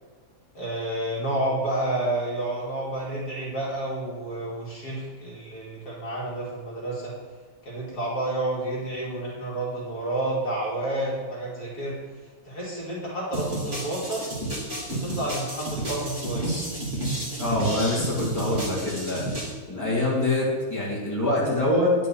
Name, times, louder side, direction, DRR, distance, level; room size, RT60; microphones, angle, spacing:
voice 1, 0.5-7.1 7.6-11.9 12.4-14.2 14.9-16.5, right 1 dB, 70° left, -5 dB, 2.8 m, -30 dB
sound 1, 13.3-19.5, right 1 dB, 30° right, 2.3 m, -31 dB
voice 2, 17.4-19.3 19.7-21.9, left 1 dB, 10° left, -7 dB, 2.8 m, -25 dB
9.7 x 5.7 x 5.6 m, 1.4 s
omnidirectional pair, 1.7 m